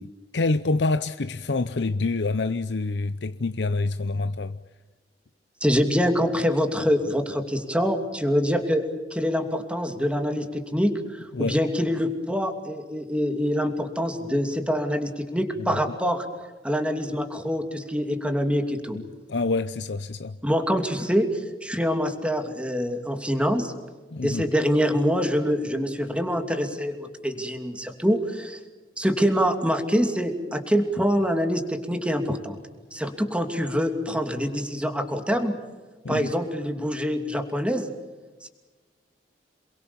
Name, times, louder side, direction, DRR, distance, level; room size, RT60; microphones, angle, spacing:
voice 1, 0.3-4.6 11.3-11.6 15.6-15.9 18.9-19.0 19.3-20.4 24.1-24.4 36.0-36.3, left 3 dB, 90° left, 0.7 m, -27 dB
voice 2, 5.6-8.8 9.1-16.3 16.6-19.0 20.4-23.7 24.2-28.6 29.0-32.6 32.9-35.5 36.1-37.9 38.4-38.5, equal, 5° right, 2.7 m, -25 dB
28.0 x 22.5 x 7.1 m
head